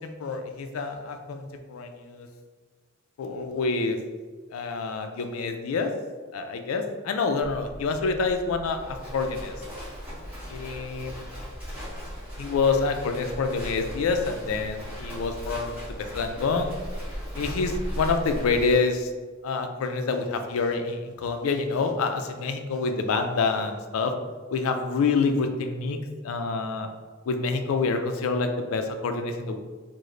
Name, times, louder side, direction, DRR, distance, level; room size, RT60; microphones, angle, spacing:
voice 1, 0.0-2.3 3.2-4.0 4.5-5.9 6.3-9.6 10.5-11.2 12.4-16.8 17.4-19.1 19.4-24.1 24.5-26.9 27.3-29.6, left 4 dB, 85° left, 6 dB, 0.3 m, -27 dB
Livestock farm animals working animals, 7.4-18.8, equal, 5° right, 1.1 m, -37 dB
3.1 x 2.0 x 3.7 m, 1.4 s
head